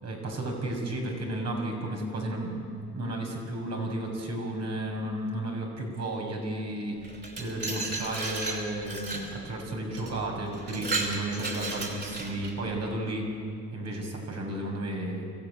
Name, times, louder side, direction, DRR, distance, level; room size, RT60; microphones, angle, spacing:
voice 1, 0.0-2.7 2.9-7.0 7.4-13.3 13.7-15.3, right 1 dB, 60° right, 1 dB, 6.6 m, -33 dB
Glass, 7.0-9.3 10.0-10.1 10.5-12.6, right 3 dB, 35° right, 5.7 m, -34 dB
24.5 x 16.0 x 9.9 m, 2.3 s
cardioid pair, 90°, 30 cm